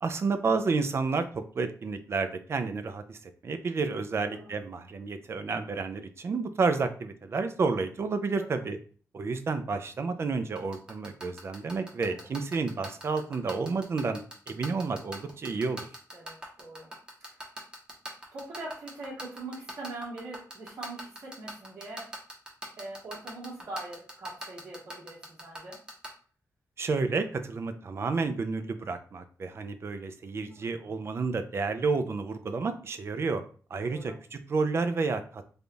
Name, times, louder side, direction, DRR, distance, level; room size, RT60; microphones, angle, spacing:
voice 1, 0.0-3.2 3.4-8.8 9.1-15.9 26.8-33.4 33.7-35.4, right 4 dB, 45° right, 8 dB, 0.4 m, -30 dB
voice 2, 4.2-4.5 8.3-8.4 12.0-12.3 16.1-16.9 17.4-17.5 18.3-22.1 22.8-25.8 30.5-30.8 33.8-34.1, right 2 dB, 60° right, -8 dB, 1.5 m, -42 dB
sound 1, 10.6-26.1, right 1 dB, 15° right, 1.0 m, -39 dB
3.4 x 2.3 x 3.8 m, 0.42 s
wide cardioid pair, 145°, 6 cm